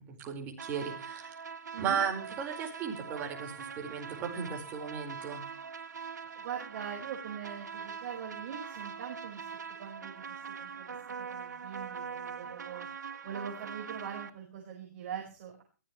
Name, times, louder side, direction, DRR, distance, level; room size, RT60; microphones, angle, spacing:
voice 1, 0.0-1.3 1.8-5.5, right 7 dB, 20° right, 1 dB, 4.6 m, -36 dB
sound 1, 0.6-14.3, right 6 dB, 85° right, 3.0 m, -43 dB
voice 2, 1.7-2.0 6.2-9.5 9.8-15.6, right 8 dB, 40° right, 0 dB, 5.0 m, -43 dB
22.0 x 16.0 x 3.2 m, 0.37 s
hypercardioid pair, 165°, 9 cm